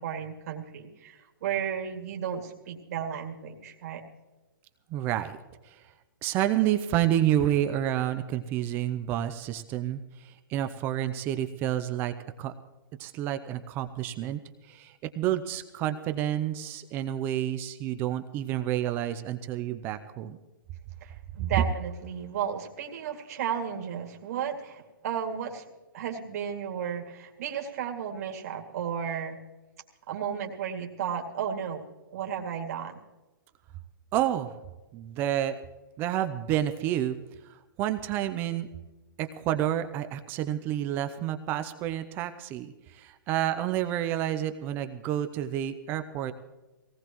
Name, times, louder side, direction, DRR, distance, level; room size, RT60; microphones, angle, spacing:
voice 1, 0.0-4.0 21.0-25.6 25.9-29.4 30.1-31.9 32.1-33.0, right 8 dB, 45° right, 2 dB, 2.2 m, -33 dB
voice 2, 4.9-5.8 6.2-12.5 13.0-14.4 14.7-20.4 34.1-34.5 34.9-35.6 36.0-37.2 37.5-38.7 39.2-46.3, right 12 dB, 15° right, 9 dB, 0.5 m, -29 dB
19.5 x 18.0 x 3.0 m, 1.1 s
hypercardioid pair, 160°, 12 cm